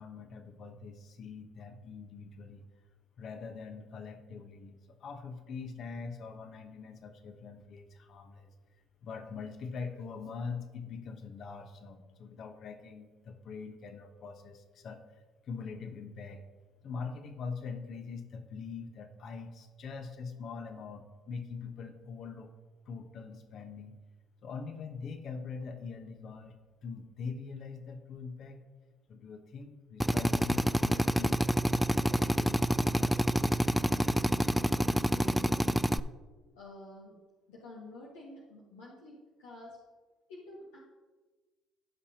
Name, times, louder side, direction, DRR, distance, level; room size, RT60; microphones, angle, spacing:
voice 1, 0.0-2.6 3.2-8.5 9.0-16.4 16.8-22.5 22.9-24.0 24.4-28.6 29.1-33.8, left 5 dB, 60° left, 6 dB, 1.1 m, -43 dB
Drill, 30.0-36.0, equal, ahead, 0.3 m, -27 dB
voice 2, 35.1-36.0 36.5-37.2 37.5-39.8 40.3-40.8, left 2 dB, 85° left, -4 dB, 1.3 m, -49 dB
15.0 x 5.7 x 2.9 m, 1.3 s
hypercardioid pair, 65°, 0 cm